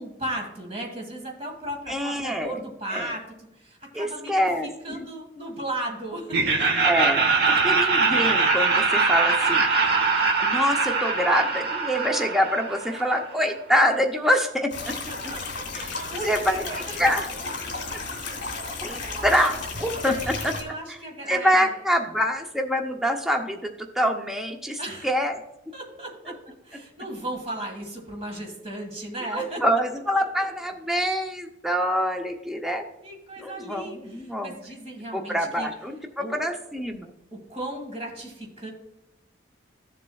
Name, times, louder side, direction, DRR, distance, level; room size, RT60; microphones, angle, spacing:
voice 1, 0.0-4.3 4.8-6.4 14.8-17.0 18.5-19.3 20.0-21.7 24.8-25.1 25.7-29.6 30.1-30.2 33.0-35.7 36.2-36.4 37.3-38.7, right 1 dB, 30° right, 1 dB, 1.7 m, -36 dB
voice 2, 1.9-2.6 2.9-3.1 3.9-5.1 6.8-9.6 10.4-14.7 15.7-15.9 16.2-16.6 17.0-17.3 18.8-20.5 20.9-21.0 21.3-25.4 29.3-32.8 33.4-34.5 35.1-37.1, equal, ahead, 2 dB, 0.6 m, -25 dB
Laughter, 6.3-13.2, right 4 dB, 55° right, 1.0 m, -22 dB
sound 1, 14.7-20.6, left 3 dB, 55° left, 2.4 m, -33 dB
14.0 x 7.4 x 2.3 m, 0.87 s
head